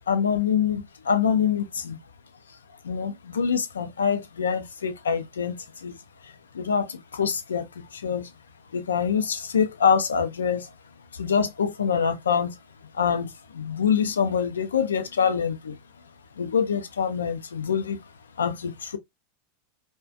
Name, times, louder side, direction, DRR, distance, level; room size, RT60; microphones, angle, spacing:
voice 1, 0.1-2.0 2.8-6.0 6.2-8.3 8.7-10.7 11.1-12.6 12.9-15.8 16.4-18.0 18.4-19.0, left 7 dB, 80° left, 0.4 m, -25 dB
2.4 x 2.1 x 2.4 m
hypercardioid pair, 90°, 0 cm